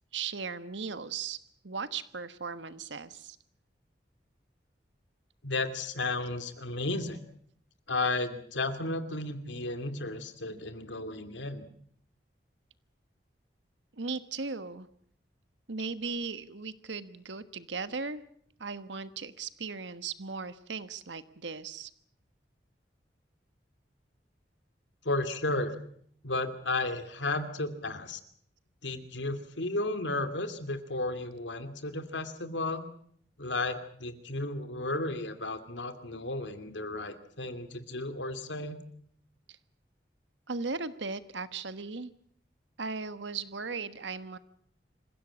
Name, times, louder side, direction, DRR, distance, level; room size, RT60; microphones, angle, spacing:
voice 1, 0.1-1.4 1.6-3.4 14.0-14.9 15.7-18.2 18.6-21.9 39.5-39.6 40.5-42.1 42.8-44.4, right 4 dB, 85° right, 12 dB, 1.3 m, -37 dB
voice 2, 5.4-7.2 7.9-11.7 25.0-25.8 26.2-28.2 28.8-32.8 33.4-38.8, left 2 dB, 90° left, 9 dB, 2.6 m, -33 dB
26.5 x 16.0 x 8.7 m, 0.64 s
head